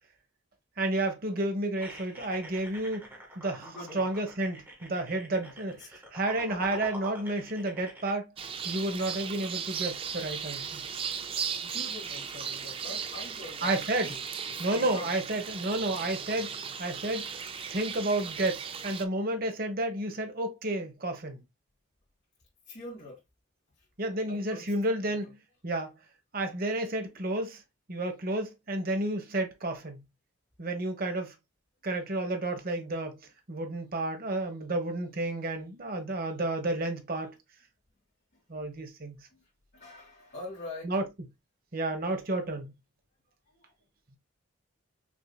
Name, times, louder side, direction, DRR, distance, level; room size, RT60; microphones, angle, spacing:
voice 1, 0.8-3.0 3.4-8.2 8.6-10.8 13.6-14.1 14.6-16.5 16.8-17.3 17.7-21.4 24.0-25.4 25.6-25.9 26.3-27.6 27.9-30.0 30.6-31.3 31.8-33.2 33.5-37.3 38.5-39.2 40.8-41.0 41.7-42.7, right 2 dB, 45° right, 1.0 m, -31 dB
sound 1, 1.8-8.1, equal, 10° right, 1.5 m, -46 dB
voice 2, 3.6-4.1 5.7-5.9 11.6-14.2 14.5-15.1 22.7-23.2 24.3-24.7 25.0-25.2 39.3-39.4 39.7-40.9 43.6-43.7, left 2 dB, 60° left, 2.0 m, -44 dB
sound 2, 8.4-19.0, right 7 dB, 25° right, 0.4 m, -37 dB
6.1 x 2.8 x 2.2 m
head